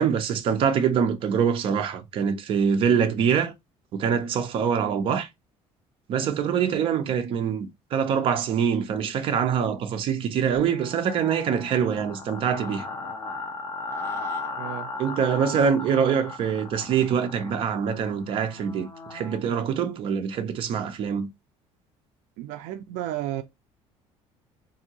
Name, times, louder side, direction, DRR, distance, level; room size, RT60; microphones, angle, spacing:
voice 1, 0.0-3.5 3.9-5.3 6.1-12.8 15.0-21.3, right 7 dB, 45° right, 0.6 m, -24 dB
sound 1, 10.6-19.4, left 3 dB, 20° left, 0.8 m, -37 dB
voice 2, 14.6-14.9 22.4-23.4, right 13 dB, 85° right, 0.4 m, -32 dB
3.5 x 2.7 x 2.8 m
cardioid pair, 150°, 12 cm